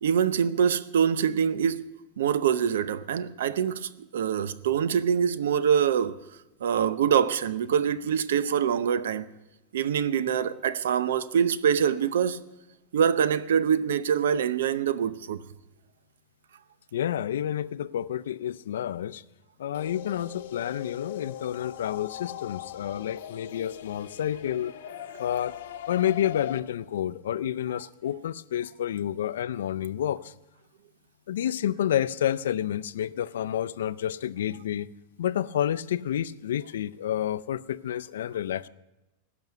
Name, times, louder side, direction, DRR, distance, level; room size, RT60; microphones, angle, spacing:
voice 1, 0.0-6.2 6.6-9.3 9.7-12.4 12.9-15.4, right 8 dB, 90° right, 0.7 m, -25 dB
voice 2, 16.9-19.2 19.6-24.7 25.2-25.5 25.9-30.3 31.3-34.9 35.2-38.7, left 10 dB, 90° left, 0.5 m, -29 dB
sound 1, 19.7-26.6, left 11 dB, 70° left, 1.0 m, -40 dB
16.0 x 6.2 x 9.2 m
supercardioid pair, 150°, 0 cm